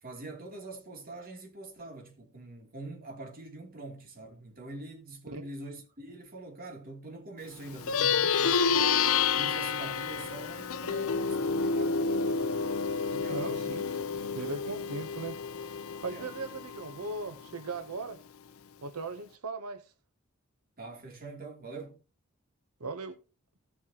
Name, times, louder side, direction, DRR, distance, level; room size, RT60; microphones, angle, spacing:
voice 1, 0.0-12.7 13.0-13.7 16.1-16.3 20.8-22.0, right 2 dB, 40° right, 2.9 m, -44 dB
Plucked string instrument, 7.7-17.5, left 5 dB, 65° left, 0.6 m, -29 dB
voice 2, 13.3-14.0 14.3-15.8 16.0-18.2 18.8-19.9 22.8-23.2, right 3 dB, 90° right, 0.9 m, -38 dB
16.5 x 7.2 x 2.9 m
head